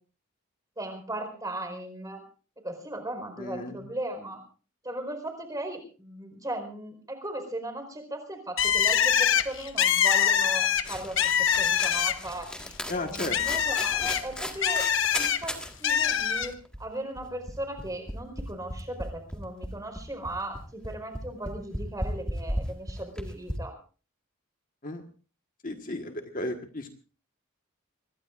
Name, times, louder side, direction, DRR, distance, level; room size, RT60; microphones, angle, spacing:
voice 1, 0.8-2.2 2.6-4.4 4.8-11.2 11.6-12.5 12.9-14.8 15.1-15.5 15.8-16.5 16.8-23.7, right 1 dB, 15° right, 5 dB, 4.6 m, -37 dB
voice 2, 3.4-3.8 12.9-13.4 14.0-14.1 24.8-25.0 25.6-27.0, left 2 dB, 40° left, 4 dB, 1.5 m, -34 dB
Bird, 8.6-12.4 12.8-15.4 15.8-16.5, left 8 dB, 60° left, 1.1 m, -24 dB
sound 1, 10.8-15.7 16.1-16.2 16.4-23.5, equal, 5° left, 1.8 m, -36 dB
25.0 x 21.0 x 2.5 m, 0.38 s
head